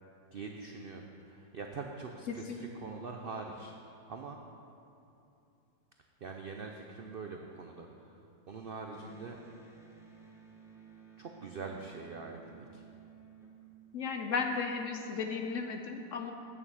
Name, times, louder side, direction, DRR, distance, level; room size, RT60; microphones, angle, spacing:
voice 1, 0.3-3.7 4.1-4.4 6.2-8.2 8.5-9.4 11.2-12.8, right 4 dB, 70° right, 2 dB, 0.5 m, -43 dB
voice 2, 2.3-2.9 13.9-16.3, left 5 dB, 60° left, 4 dB, 0.9 m, -35 dB
Electric guitar, 8.9-14.4, right 7 dB, ahead, 0.8 m, -56 dB
8.8 x 7.0 x 7.3 m, 2.7 s
omnidirectional pair, 1.8 m